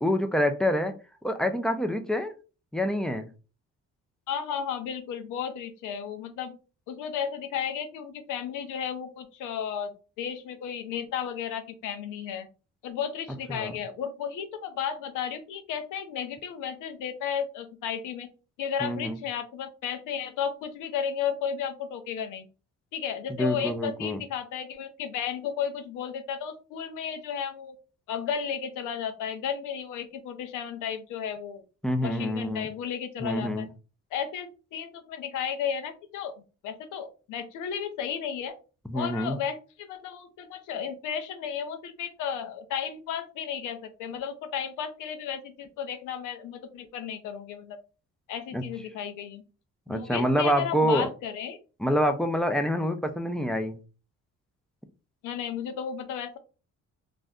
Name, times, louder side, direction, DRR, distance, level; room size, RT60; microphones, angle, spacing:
voice 1, 0.0-0.9 1.2-2.3 2.7-3.3 13.5-13.8 18.8-19.2 23.3-24.2 31.8-32.7 33.2-33.7 38.9-39.4 48.5-48.6 49.9-51.1 51.8-53.8, equal, ahead, 6 dB, 0.4 m, -26 dB
voice 2, 4.3-6.6 6.9-12.5 12.8-18.3 18.6-22.5 22.9-27.7 28.1-31.6 32.0-33.7 34.1-36.3 36.6-38.5 38.9-47.8 48.3-49.4 49.9-51.6 55.2-56.4, left 8 dB, 90° left, 7 dB, 0.6 m, -33 dB
2.6 x 2.1 x 3.5 m, 0.34 s
cardioid pair, 90°, 30 cm